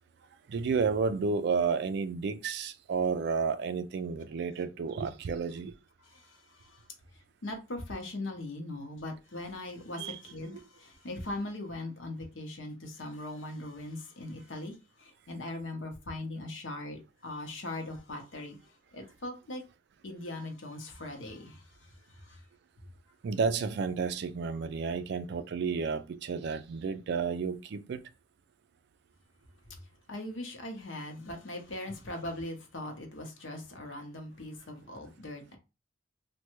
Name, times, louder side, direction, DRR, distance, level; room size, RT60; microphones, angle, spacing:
voice 1, 0.5-5.7 10.0-10.2 10.5-10.6 23.2-28.0, right 5 dB, 55° right, 0.3 m, -31 dB
voice 2, 6.0-6.8 7.4-18.6 18.9-19.6 20.0-21.9 22.2-22.4 30.1-35.6, left 1 dB, 70° left, 0.8 m, -40 dB
3.2 x 2.2 x 3.0 m
head